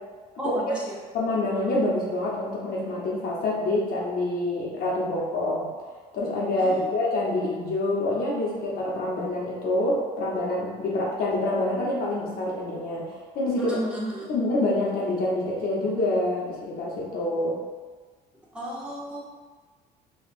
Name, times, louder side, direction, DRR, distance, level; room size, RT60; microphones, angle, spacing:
voice 1, 0.4-1.0 6.6-6.9 13.6-14.3 18.5-19.2, right 1 dB, 5° right, -7 dB, 0.9 m, -33 dB
voice 2, 1.1-5.7 6.1-13.8 14.3-17.6, left 2 dB, 60° left, -4 dB, 0.8 m, -26 dB
4.3 x 2.4 x 2.4 m, 1.4 s
cardioid pair, 110°, 17 cm